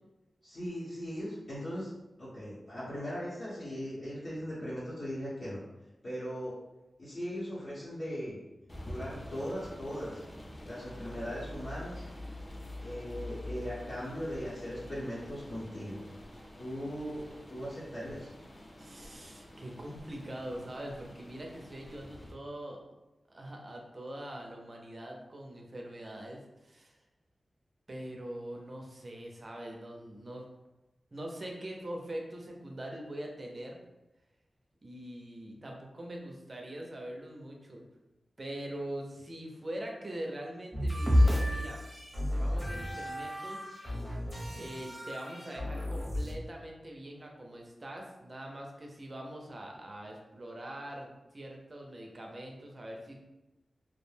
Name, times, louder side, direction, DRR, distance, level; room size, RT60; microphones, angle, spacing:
voice 1, 0.4-1.9 2.2-5.6 6.0-6.6 7.0-8.4 8.8-10.2 10.6-12.0 12.8-16.0 16.6-17.2 17.5-18.3, equal, 50° left, -11 dB, 0.8 m, -39 dB
sound 1, 8.7-22.3, left 1 dB, 25° left, 0.4 m, -46 dB
voice 2, 18.8-22.8 23.3-26.9 27.9-30.5 31.1-33.8 34.8-37.8 38.4-41.8 42.3-43.7 44.5-53.1, right 1 dB, 35° right, 0 dB, 0.5 m, -43 dB
sound 2, 40.7-46.3, equal, ahead, 0.7 m, -31 dB
2.3 x 2.1 x 3.1 m, 1.0 s
wide cardioid pair, 130°, 0 cm